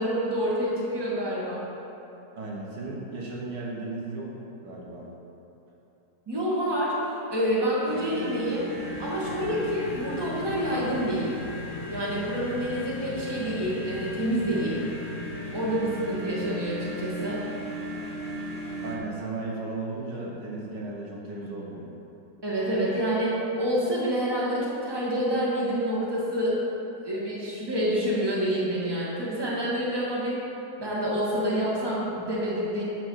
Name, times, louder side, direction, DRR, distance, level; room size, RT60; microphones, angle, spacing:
voice 1, 0.0-1.6 6.3-8.7 9.0-11.3 11.9-14.8 15.5-17.4 22.4-26.6 27.0-30.4 30.8-32.8, equal, 15° right, -6 dB, 1.7 m, -27 dB
voice 2, 2.4-4.3 4.6-5.1 18.8-21.9, right 3 dB, 80° right, -3 dB, 1.9 m, -35 dB
sound 1, 7.8-19.0, left 1 dB, 45° left, 1.6 m, -36 dB
9.6 x 4.7 x 6.4 m, 2.9 s
omnidirectional pair, 1.9 m